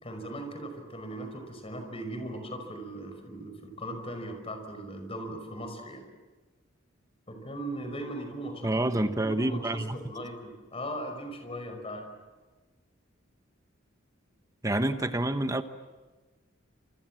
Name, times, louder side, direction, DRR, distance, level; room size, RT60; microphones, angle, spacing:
voice 1, 0.0-6.0 7.3-8.9 9.2-12.0, right 1 dB, 30° left, 5 dB, 5.4 m, -38 dB
voice 2, 8.6-10.0 14.6-15.6, right 1 dB, 15° right, 9 dB, 1.1 m, -28 dB
29.0 x 27.0 x 7.6 m, 1.3 s
head